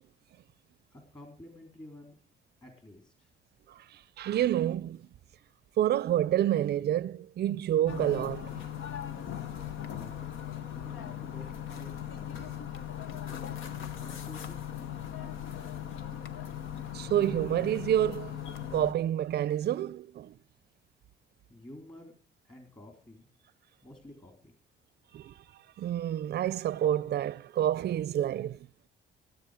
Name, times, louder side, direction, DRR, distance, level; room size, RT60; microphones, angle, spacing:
voice 1, 0.9-2.1 2.6-3.3 9.9-10.3 10.7-12.6 13.2-14.7 15.2-16.0 21.5-22.1 22.4-23.3 23.8-24.5, left 1 dB, 25° left, 3.7 m, -51 dB
voice 2, 3.8-5.1 5.8-8.6 16.9-18.4 18.7-20.4 25.1-25.4 25.8-28.7, right 11 dB, 55° right, 0.5 m, -28 dB
sound 1, 7.9-18.9, left 10 dB, 85° left, 1.0 m, -39 dB
16.5 x 8.2 x 5.0 m
cardioid pair, 90°, 20 cm